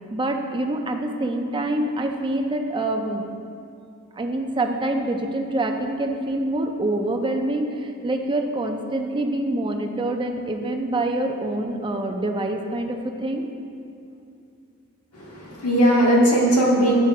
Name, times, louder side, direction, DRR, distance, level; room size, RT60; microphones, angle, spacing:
voice 1, 0.1-3.2 4.2-13.5, right 1 dB, 20° right, 4 dB, 0.5 m, -26 dB
voice 2, 15.1-17.0, right 1 dB, 80° left, -3 dB, 1.5 m, -18 dB
9.8 x 3.4 x 4.6 m, 2.5 s
head